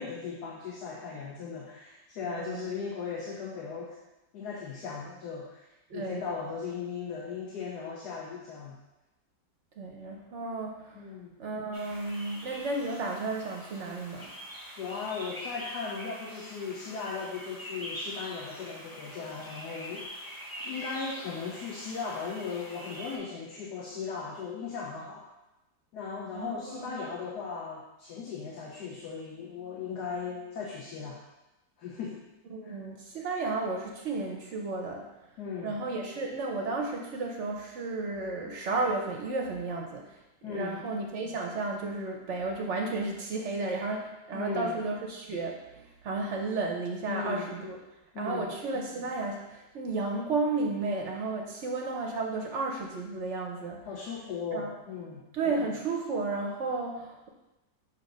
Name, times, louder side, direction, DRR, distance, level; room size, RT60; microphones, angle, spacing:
voice 1, 0.0-4.0 4.3-8.8 10.9-11.3 14.8-25.3 25.9-31.2 31.8-32.2 32.6-32.7 35.4-35.8 40.4-40.8 44.3-44.8 47.1-47.5 48.1-48.5 53.9-55.2, left 5 dB, 70° left, -3 dB, 1.3 m, -37 dB
voice 2, 2.2-2.7 5.9-6.2 9.8-11.0 11.4-14.3 26.3-27.0 32.5-35.1 35.6-40.2 40.4-47.8 48.2-53.9 54.5-54.7 55.3-57.3, right 3 dB, 60° right, 1 dB, 0.8 m, -33 dB
sound 1, 11.7-23.2, equal, 20° left, 0.6 m, -44 dB
6.8 x 2.8 x 5.2 m, 0.99 s
omnidirectional pair, 1.8 m